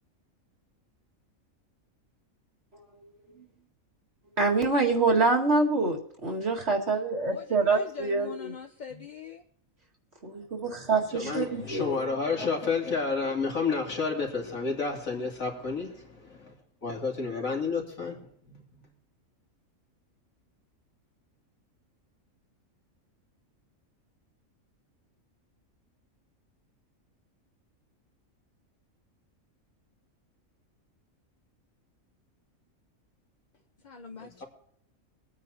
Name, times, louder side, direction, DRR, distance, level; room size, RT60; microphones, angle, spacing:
voice 1, 4.4-8.5 10.2-12.0, right 3 dB, 50° right, 2.3 m, -26 dB
voice 2, 7.2-9.4 33.8-34.4, left 5 dB, 40° left, 0.8 m, -43 dB
voice 3, 10.9-16.5 16.8-18.8 34.2-34.4, left 4 dB, 75° left, 3.1 m, -31 dB
23.0 x 9.3 x 2.8 m
omnidirectional pair, 1.4 m